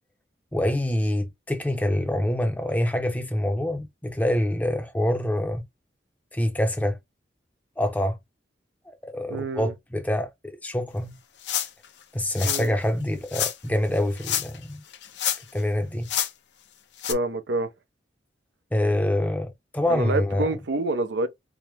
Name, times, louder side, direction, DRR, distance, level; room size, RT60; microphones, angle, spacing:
voice 1, 0.5-5.6 6.3-7.0 7.8-8.2 8.9-11.2 12.1-14.8 15.5-16.1 18.7-20.5, left 1 dB, 10° left, 0.6 m, -26 dB
voice 2, 9.3-9.7 12.4-12.7 17.1-17.7 19.9-21.3, right 2 dB, 85° right, 0.6 m, -27 dB
sound 1, 11.4-11.9 12.3-12.7 13.3-13.6 14.2-14.6 14.9-15.6 16.1-16.3 17.0-17.1, left 11 dB, 80° left, 0.7 m, -27 dB
4.7 x 2.0 x 3.3 m
head